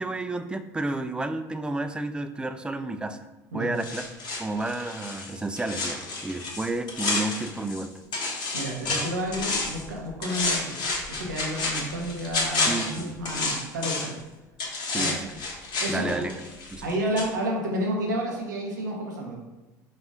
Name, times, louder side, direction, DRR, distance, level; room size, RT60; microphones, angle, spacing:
voice 1, 0.0-3.3 3.5-4.0 4.4-7.9 8.9-9.0 12.7-13.2 14.9-15.3 15.9-16.3 16.7-16.9, right 2 dB, 10° right, 9 dB, 0.3 m, -31 dB
sound 1, 3.8-7.8 8.1-9.9 10.2-14.2 14.6-16.9 17.2-17.3, left 3 dB, 50° left, 1.1 m, -30 dB
voice 2, 8.5-10.8 11.1-14.2 14.9-15.1 15.8-16.4 16.8-19.4, right 1 dB, 90° right, 0 dB, 0.7 m, -30 dB
4.1 x 2.4 x 3.5 m, 1.1 s
hypercardioid pair, 75°, 10 cm